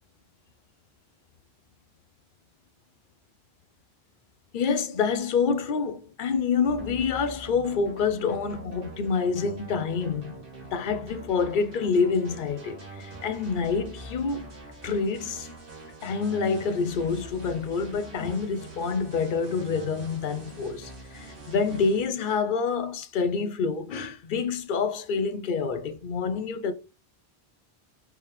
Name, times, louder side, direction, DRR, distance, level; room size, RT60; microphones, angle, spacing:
voice 1, 4.5-10.4 10.7-14.5 14.8-15.5 16.0-26.7, left 5 dB, 55° left, 0.7 m, -27 dB
sound 1, 6.6-22.0, right 2 dB, 60° right, 1.9 m, -44 dB
4.5 x 3.6 x 3.1 m
omnidirectional pair, 1.1 m